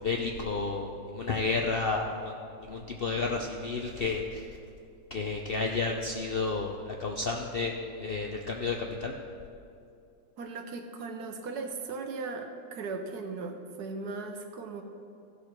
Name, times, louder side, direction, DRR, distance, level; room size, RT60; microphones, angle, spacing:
voice 1, 0.0-2.3 2.7-4.5 5.1-9.1, left 3 dB, 60° left, 1 dB, 0.6 m, -31 dB
voice 2, 10.4-14.8, right 4 dB, 75° right, 5 dB, 1.4 m, -38 dB
15.5 x 6.6 x 4.5 m, 2.5 s
omnidirectional pair, 1.7 m